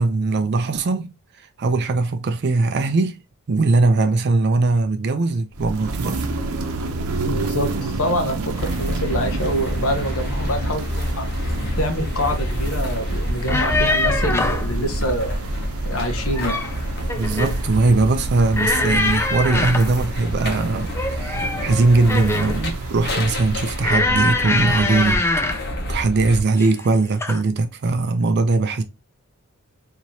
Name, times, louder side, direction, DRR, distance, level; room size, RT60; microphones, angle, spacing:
voice 1, 0.0-3.2 3.5-6.2 17.2-25.3 25.9-28.8, right 3 dB, 50° right, 0.4 m, -20 dB
sound 1, 5.5-24.1, right 2 dB, 90° right, 0.7 m, -30 dB
voice 2, 7.3-11.3 11.8-15.4 15.8-16.6, equal, 80° left, 1.0 m, -26 dB
sound 2, 8.5-26.4, equal, 50° left, 1.1 m, -28 dB
sound 3, 13.3-14.7 16.1-16.7 17.1-17.6 18.5-20.0 20.9-22.6 23.8-25.7 26.6-26.9 27.2-27.4, left 2 dB, 10° left, 0.4 m, -23 dB
4.6 x 2.9 x 2.7 m
head